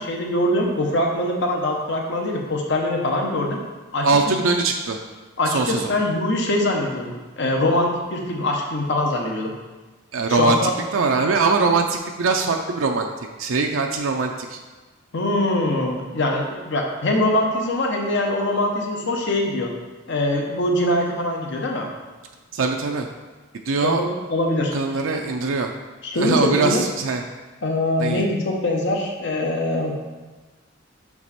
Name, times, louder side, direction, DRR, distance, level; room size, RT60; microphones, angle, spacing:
voice 1, 0.0-3.6 3.9-4.1 5.4-9.5 10.3-10.7 15.1-19.7 20.1-21.9 23.8-24.7 26.0-26.8 27.6-30.0, left 1 dB, 60° left, 1 dB, 0.9 m, -23 dB
voice 2, 4.0-5.0 5.5-6.0 10.1-13.1 13.4-14.6 22.5-23.1 23.7-24.0 24.7-25.7 26.1-27.2 28.0-28.2, right 4 dB, 80° right, 3 dB, 0.5 m, -22 dB
5.8 x 4.7 x 4.2 m, 1.2 s
head